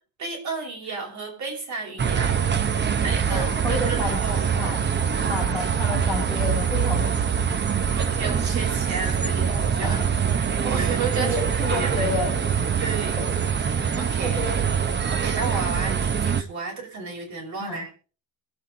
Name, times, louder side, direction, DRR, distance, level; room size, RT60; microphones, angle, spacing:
voice 1, 0.2-2.4 3.0-4.4 7.9-10.0 10.3-11.4 11.7-12.1 12.8-13.2 13.7-14.4 15.1-17.9, right 4 dB, 50° right, 0 dB, 5.9 m, -32 dB
sound 1, 2.0-16.4, right 7 dB, 30° right, 0.9 m, -24 dB
voice 2, 3.3-4.2 4.5-4.8 5.3-7.1 9.8-10.1 11.2-12.3 13.2-13.3 13.7-13.8 14.2-14.5 17.6-17.9, left 2 dB, ahead, -5 dB, 6.3 m, -30 dB
24.0 x 8.1 x 3.8 m, 0.37 s
cardioid pair, 165°, 37 cm